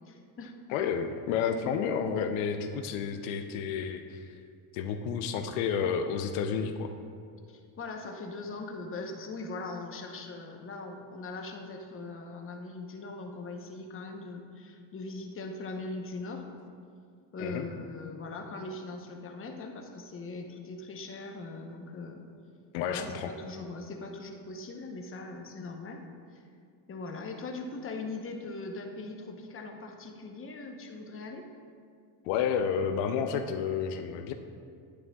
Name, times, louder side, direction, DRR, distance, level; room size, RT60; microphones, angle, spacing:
voice 1, 0.1-0.5 7.5-16.5 17.3-22.3 22.9-26.0 26.3-26.4 26.9-31.4, left 3 dB, 25° left, 2 dB, 0.9 m, -40 dB
voice 2, 0.7-4.3 4.7-6.9 17.4-17.6 22.7-23.3 32.2-34.3, left 7 dB, 85° left, 7 dB, 0.6 m, -30 dB
10.0 x 8.5 x 2.3 m, 2.3 s
cardioid pair, 105°, 48 cm